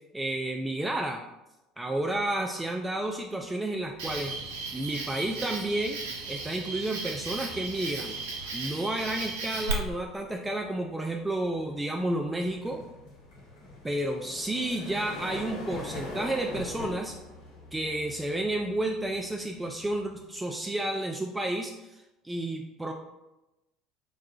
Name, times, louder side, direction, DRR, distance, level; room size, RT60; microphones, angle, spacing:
voice 1, 0.1-1.2 1.8-4.3 4.7-6.0 6.3-8.2 8.5-12.8 13.8-17.1 17.7-21.9 22.2-22.9, right 1 dB, 10° right, 2 dB, 0.3 m, -31 dB
sound 1, 3.1-3.4 3.8-20.5, left 1 dB, 60° left, 1.1 m, -45 dB
Cricket, 4.0-9.7, right 4 dB, 70° right, 0.5 m, -36 dB
4.6 x 2.3 x 2.7 m, 0.98 s
figure-of-eight pair, 60°, 0 cm